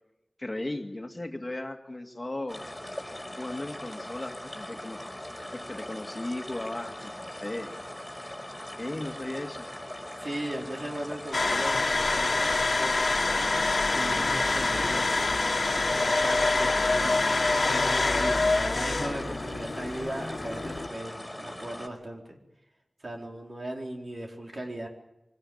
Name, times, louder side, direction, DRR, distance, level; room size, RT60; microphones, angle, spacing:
voice 1, 0.4-2.6 3.4-5.0 5.5-7.7 8.8-9.7, left 1 dB, 30° left, 5 dB, 2.2 m, -36 dB
sound 1, 2.5-21.9, left 1 dB, 10° left, 4.9 m, -40 dB
voice 2, 10.2-17.2 17.6-22.4 23.0-24.9, right 1 dB, 55° right, 1 dB, 4.5 m, -38 dB
sound 2, 11.3-20.9, left 3 dB, 70° left, 1.6 m, -26 dB
25.0 x 17.5 x 8.7 m, 0.99 s
wide cardioid pair, 70°, 0 cm